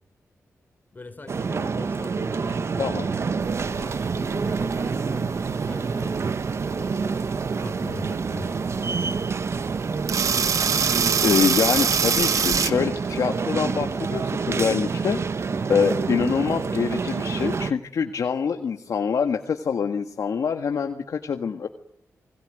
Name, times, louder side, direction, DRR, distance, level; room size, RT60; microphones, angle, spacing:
voice 1, 0.9-6.3 6.8-8.8, left 3 dB, 35° left, 7 dB, 4.5 m, -41 dB
sound 1, 1.3-17.7, right 5 dB, 55° right, 1.1 m, -27 dB
sound 2, 3.4-12.7, right 6 dB, 75° right, 1.7 m, -25 dB
voice 2, 11.2-21.7, left 6 dB, 80° left, 5 dB, 1.6 m, -25 dB
29.0 x 21.5 x 9.2 m, 0.78 s
wide cardioid pair, 100°, 6 cm